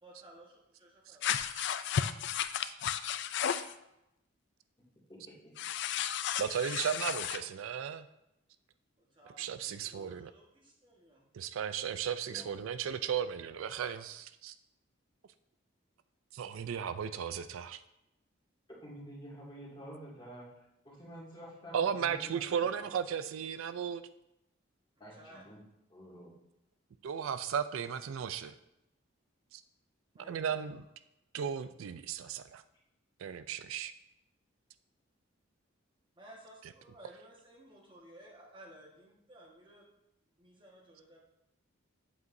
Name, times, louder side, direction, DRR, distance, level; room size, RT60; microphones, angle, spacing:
voice 1, 0.0-1.5 9.0-11.2 25.1-25.4 30.1-30.6 36.2-39.9 40.4-41.2, right 1 dB, 25° right, -2 dB, 1.4 m, -56 dB
sound 1, 1.2-3.7 5.6-7.4, left 9 dB, 60° left, 0.3 m, -33 dB
voice 2, 6.4-8.1 9.4-10.3 11.3-14.5 16.3-17.8 21.7-24.0 27.0-28.5 29.5-29.6 30.3-30.8 31.3-32.6 33.2-33.9, right 8 dB, 80° right, 12 dB, 0.4 m, -35 dB
voice 3, 18.8-22.4 22.7-22.9 25.0-25.6 25.9-26.3, right 1 dB, 25° left, -5 dB, 2.2 m, -49 dB
8.2 x 7.9 x 2.6 m, 0.86 s
head